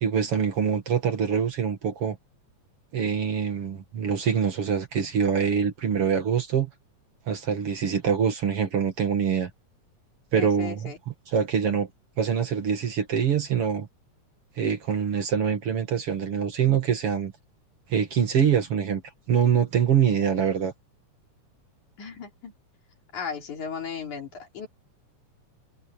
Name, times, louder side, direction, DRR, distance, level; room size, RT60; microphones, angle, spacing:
voice 1, 0.0-2.2 2.9-6.7 7.3-9.5 10.3-11.9 12.2-13.9 14.6-17.3 17.9-19.0 19.3-20.7, right 7 dB, 50° right, 2.8 m, -24 dB
voice 2, 10.3-11.0 22.0-22.5 23.1-24.7, left 6 dB, 75° left, 5.3 m, -36 dB
omnidirectional pair, 3.5 m